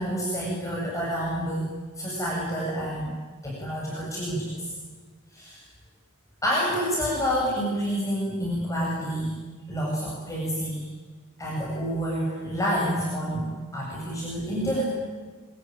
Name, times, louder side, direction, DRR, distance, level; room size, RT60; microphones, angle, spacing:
voice 1, 0.0-1.7 2.0-3.2 3.4-4.7 5.3-5.6 6.4-9.4 9.7-10.9 11.4-14.8, equal, 15° left, -5 dB, 7.6 m, -28 dB
26.0 x 25.0 x 9.1 m, 1.4 s
head